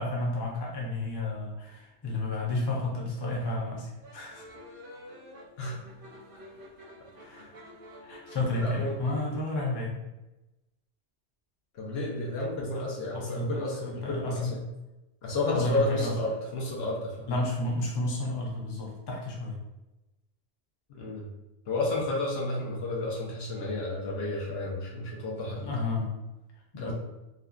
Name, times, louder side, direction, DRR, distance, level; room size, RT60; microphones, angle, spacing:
voice 1, 0.0-4.4 7.2-7.5 8.0-9.9 13.1-14.5 15.5-16.1 17.3-19.6 25.6-26.1 26.7-26.9, left 2 dB, 35° left, -3 dB, 0.4 m, -31 dB
sound 1, 4.0-9.3, equal, 60° right, 0.7 m, -48 dB
voice 2, 8.5-8.9 11.7-14.6 15.2-17.3 20.9-21.3 21.7-25.8 26.8-26.9, left 2 dB, 70° left, -3 dB, 0.9 m, -31 dB
2.6 x 2.4 x 2.3 m, 1.0 s
omnidirectional pair, 1.1 m